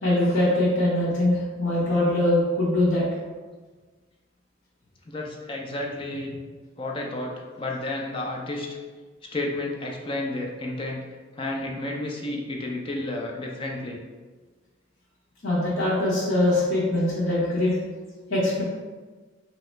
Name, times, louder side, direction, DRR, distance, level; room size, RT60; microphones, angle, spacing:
voice 1, 0.0-3.0 15.4-17.7 18.3-18.6, left 1 dB, 70° left, -8 dB, 0.8 m, -22 dB
voice 2, 5.1-6.4 6.8-8.7 9.3-11.0 11.4-14.0, left 2 dB, 25° left, 0 dB, 0.4 m, -31 dB
3.0 x 2.9 x 4.3 m, 1.4 s
head